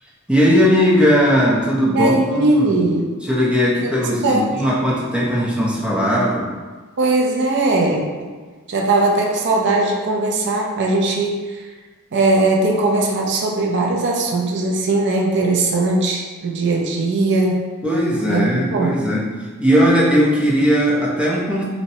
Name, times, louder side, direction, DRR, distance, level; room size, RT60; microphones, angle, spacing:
voice 1, 0.3-2.8 3.2-6.5 17.8-19.2 19.6-21.6, equal, 5° right, -7 dB, 0.6 m, -18 dB
voice 2, 1.9-3.1 3.8-4.0 4.2-4.5 7.0-8.3 8.7-11.6 12.1-17.6 18.3-19.0, right 2 dB, 55° right, 0 dB, 0.5 m, -19 dB
4.0 x 2.1 x 2.7 m, 1.4 s
head